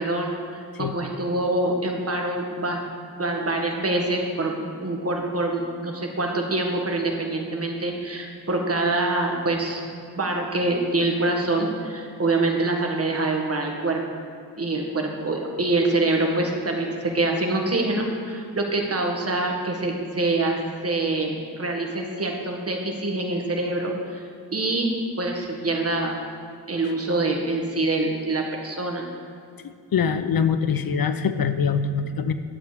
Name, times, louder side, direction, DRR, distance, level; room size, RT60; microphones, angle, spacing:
voice 1, 0.0-2.8 3.2-4.5 4.8-9.8 10.1-14.0 14.6-24.2 24.5-24.9 25.2-26.2 26.7-29.1, right 2 dB, 35° right, 1 dB, 1.6 m, -25 dB
voice 2, 29.6-32.3, left 6 dB, 60° left, 10 dB, 0.7 m, -24 dB
11.0 x 7.6 x 5.0 m, 2.4 s
wide cardioid pair, 105°, 40 cm